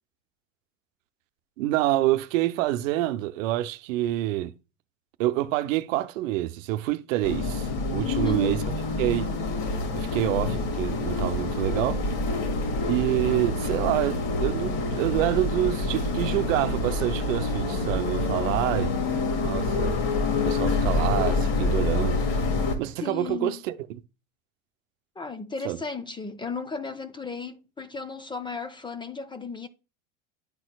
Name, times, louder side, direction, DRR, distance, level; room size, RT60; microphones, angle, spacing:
voice 1, 1.6-4.5 5.2-8.6 9.0-9.3 9.9-12.0 12.9-18.9 19.4-20.0 20.4-22.2 22.8-24.0 25.6-25.8, right 15 dB, 70° right, 0.7 m, -27 dB
sound 1, 7.2-22.7, left 3 dB, 50° left, 2.0 m, -27 dB
voice 2, 8.1-8.5 23.0-23.6 25.2-29.7, left 5 dB, 10° left, 0.5 m, -35 dB
10.5 x 4.4 x 2.3 m
supercardioid pair, 110°, 40 cm